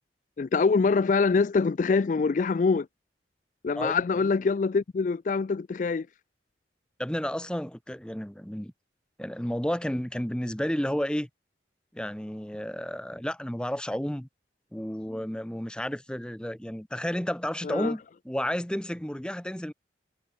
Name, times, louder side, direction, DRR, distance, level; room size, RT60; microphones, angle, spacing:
voice 1, 0.4-2.9 3.6-6.1 17.6-17.9, left 4 dB, 45° left, 0.3 m, -24 dB
voice 2, 7.0-8.7 9.2-11.3 11.9-14.3 14.7-19.7, equal, 5° left, 0.9 m, -31 dB
head